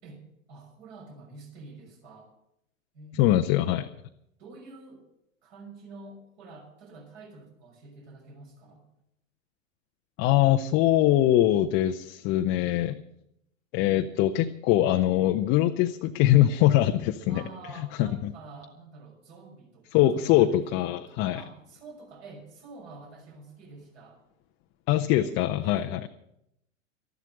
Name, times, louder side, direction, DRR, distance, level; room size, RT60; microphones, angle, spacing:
voice 1, 0.0-2.3 2.9-3.5 4.4-5.0 5.4-8.8 17.3-24.2 25.6-26.0, right 3 dB, 50° right, 1 dB, 6.3 m, -47 dB
voice 2, 3.2-3.9 10.2-13.0 13.7-17.4 18.0-18.3 19.9-21.4 24.9-26.1, left 13 dB, 30° left, 6 dB, 0.7 m, -23 dB
13.5 x 12.0 x 7.8 m, 0.79 s
figure-of-eight pair, 95°, 40 cm